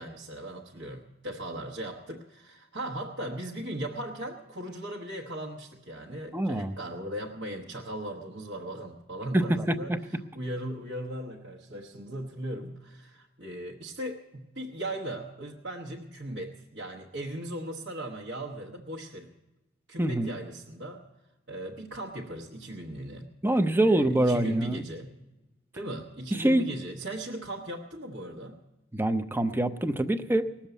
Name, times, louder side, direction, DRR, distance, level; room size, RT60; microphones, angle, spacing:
voice 1, 0.0-9.9 10.3-19.3 19.9-21.0 21.5-23.3 23.8-25.1 25.7-28.6, right 1 dB, 60° right, -2 dB, 1.2 m, -38 dB
voice 2, 6.3-6.8 9.3-10.0 20.0-20.4 23.4-24.9 26.3-26.7 28.9-30.7, right 1 dB, 10° right, 9 dB, 0.6 m, -25 dB
19.5 x 7.3 x 8.1 m, 1.0 s
head